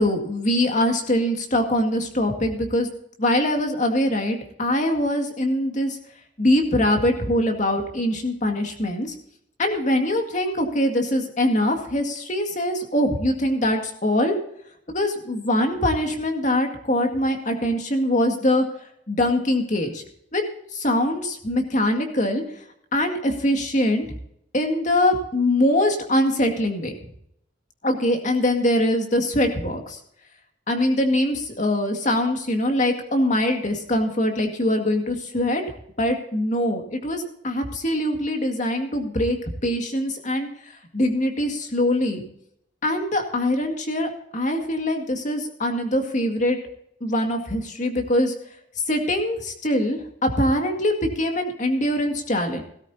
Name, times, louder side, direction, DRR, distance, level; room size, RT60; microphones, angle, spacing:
voice 1, 0.0-2.9 3.2-6.0 6.4-9.2 9.6-14.3 14.9-18.6 19.1-20.0 20.3-20.4 20.7-22.4 22.9-24.1 24.5-26.9 27.8-30.0 30.7-35.6 36.0-39.4 39.6-40.5 40.9-42.3 42.8-46.6 47.0-48.3 48.9-52.6, left 1 dB, 40° left, 5 dB, 2.0 m, -23 dB
17.5 x 13.5 x 2.8 m, 0.71 s
head